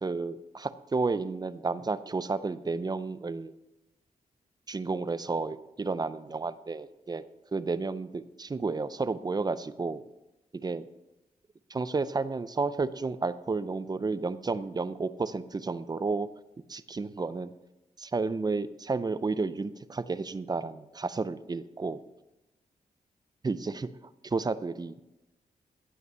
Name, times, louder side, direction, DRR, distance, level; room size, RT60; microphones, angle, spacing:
voice 1, 0.0-3.5 4.7-7.2 7.5-10.0 10.5-10.9 11.7-16.3 16.7-17.5 18.0-22.0 23.4-23.9 24.2-25.0, right 4 dB, 30° right, 14 dB, 0.5 m, -31 dB
15.5 x 5.6 x 5.6 m, 0.97 s
cardioid pair, 80°, 14 cm